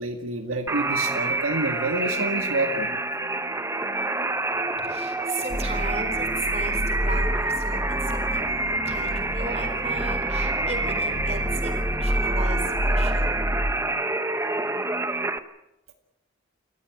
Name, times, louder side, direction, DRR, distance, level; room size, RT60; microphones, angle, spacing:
voice 1, 0.0-2.9, right 2 dB, 80° right, 5 dB, 2.1 m, -28 dB
sound 1, 0.7-15.4, right 2 dB, 15° right, 1.0 m, -27 dB
voice 2, 4.8-11.7 12.0-13.2, right 3 dB, 30° right, 6 dB, 4.2 m, -36 dB
sound 2, 5.5-13.7, equal, 5° left, 1.8 m, -29 dB
28.5 x 14.5 x 9.1 m, 0.89 s
head